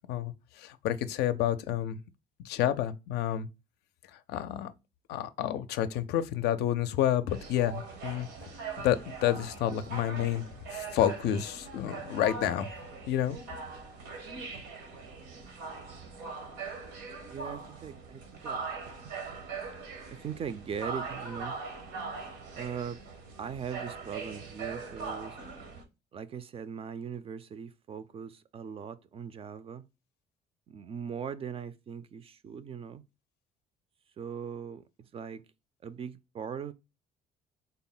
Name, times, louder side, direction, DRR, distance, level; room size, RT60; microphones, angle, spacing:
voice 1, 0.6-2.0 2.5-3.5 4.3-4.7 5.1-8.3 8.8-10.4 10.7-12.7 13.1-13.4, left 11 dB, 80° left, 0.4 m, -29 dB
sound 1, 7.3-25.8, right 4 dB, 90° right, 1.1 m, -41 dB
voice 2, 17.3-18.6 19.0-19.3 20.1-21.6 22.6-23.0 23.4-25.4 26.1-29.8 30.7-33.0 34.2-34.8 35.1-35.4 35.8-36.7, right 7 dB, 35° right, 0.3 m, -40 dB
3.8 x 2.1 x 3.8 m
cardioid pair, 110°, 17 cm